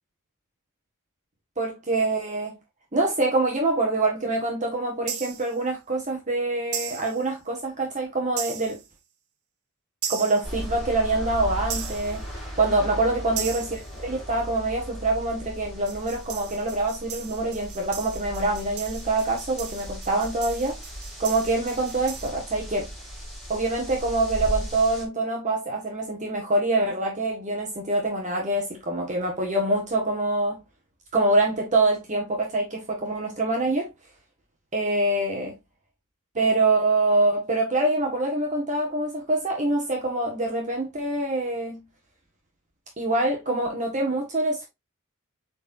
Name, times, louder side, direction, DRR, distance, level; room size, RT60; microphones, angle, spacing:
voice 1, 1.6-2.6 2.9-8.8 10.1-12.2 12.6-20.8 21.2-22.9 23.5-30.6 31.1-33.9 34.7-35.5 36.4-41.8 43.0-44.7, right 2 dB, 35° right, 1.8 m, -25 dB
sound 1, 5.1-5.5 6.7-7.2 8.4-8.9 10.0-10.6 11.7-12.2 13.4-13.9 15.9-22.3, right 8 dB, 75° right, 1.5 m, -37 dB
sound 2, 10.4-25.0, equal, ahead, 4.2 m, -37 dB
8.1 x 4.4 x 2.7 m
head